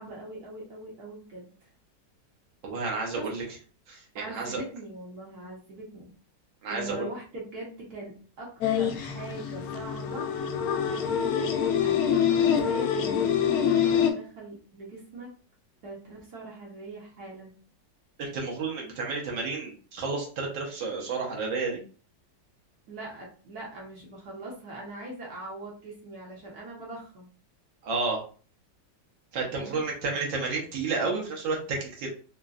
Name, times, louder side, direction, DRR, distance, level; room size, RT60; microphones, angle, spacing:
voice 1, 0.0-1.7 3.2-3.3 4.1-6.1 6.7-8.1 8.4-8.5 8.8-10.3 11.0-12.0 12.5-15.3 15.8-17.5 22.9-27.3 29.5-29.8, right 2 dB, 60° right, -4 dB, 1.3 m, -41 dB
voice 2, 2.6-3.4 3.9-4.6 6.6-7.1 18.2-21.8 27.8-28.2 29.3-32.1, right 4 dB, 80° right, -1 dB, 1.6 m, -31 dB
sound 1, 8.6-14.1, left 8 dB, 75° left, 0.8 m, -25 dB
3.8 x 2.1 x 2.3 m, 0.40 s
omnidirectional pair, 2.0 m